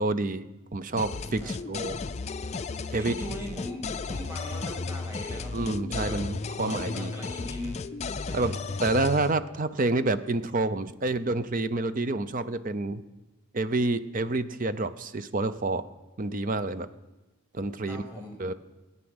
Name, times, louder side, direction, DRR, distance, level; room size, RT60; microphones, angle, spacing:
voice 1, 0.0-2.0 2.9-3.1 5.5-7.1 8.3-8.6 8.8-13.0 13.5-15.9 16.2-16.9 17.5-18.0 18.4-18.5, right 2 dB, 40° right, 13 dB, 0.6 m, -28 dB
sound 1, 1.0-9.3, left 4 dB, 30° left, 0.4 m, -34 dB
voice 2, 3.0-5.6 6.0-6.2 6.6-7.8 8.2-8.9 17.9-18.4, equal, 10° right, 0 dB, 3.1 m, -40 dB
17.0 x 9.7 x 7.9 m, 1.1 s
head